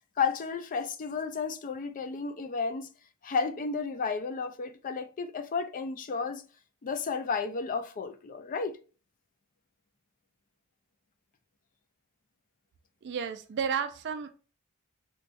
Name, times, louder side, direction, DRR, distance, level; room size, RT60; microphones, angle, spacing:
voice 1, 0.2-2.9 3.2-6.4 6.8-8.7, left 5 dB, 40° left, 0.4 m, -32 dB
voice 2, 13.0-14.4, right 7 dB, 55° right, 0.4 m, -32 dB
4.6 x 2.2 x 2.5 m
head